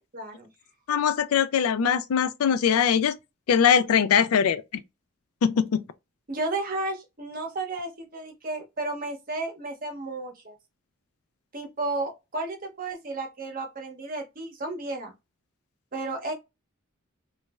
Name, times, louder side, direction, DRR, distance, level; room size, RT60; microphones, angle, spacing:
voice 1, 0.1-0.5 6.3-10.6 11.5-15.1 15.9-16.3, right 2 dB, 40° right, 0.7 m, -33 dB
voice 2, 0.9-3.2 3.5-4.8 5.4-5.8, left 7 dB, 85° left, 0.4 m, -22 dB
3.1 x 2.3 x 2.2 m
head